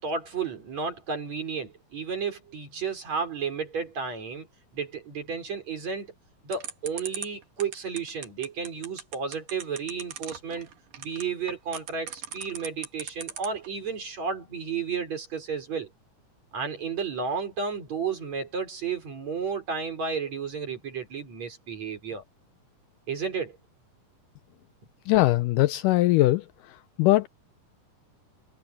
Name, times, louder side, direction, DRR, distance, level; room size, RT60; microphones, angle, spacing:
voice 1, 0.0-4.5 4.7-6.1 6.4-10.7 11.0-15.9 16.5-22.2 23.1-23.6, right 5 dB, 50° right, 6.1 m, -32 dB
sound 1, 6.5-13.7, right 8 dB, 70° right, 3.7 m, -38 dB
voice 2, 25.1-27.3, left 17 dB, 80° left, 2.0 m, -22 dB
omnidirectional pair, 4.0 m